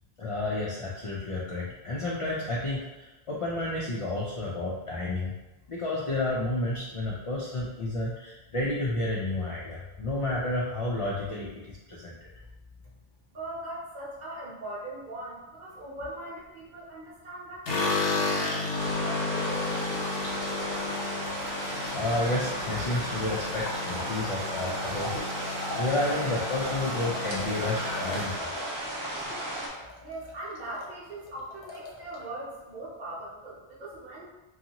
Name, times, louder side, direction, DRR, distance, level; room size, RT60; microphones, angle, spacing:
voice 1, 0.2-5.3 5.7-12.1 21.7-25.2 25.7-28.6, left 2 dB, 55° left, -5 dB, 0.3 m, -31 dB
voice 2, 13.3-21.0 30.0-34.3, right 1 dB, 50° right, -6 dB, 0.9 m, -41 dB
sound 1, 17.6-29.9 30.2-30.9 31.1-31.2 31.5-32.2, left 3 dB, 70° left, 0.8 m, -33 dB
sound 2, 18.8-29.7, right 1 dB, 35° right, 0.5 m, -35 dB
sound 3, 24.9-25.9 26.2-26.5 26.8-28.9, right 1 dB, 85° right, 0.9 m, -41 dB
2.6 x 2.3 x 2.8 m, 1.1 s
omnidirectional pair, 1.0 m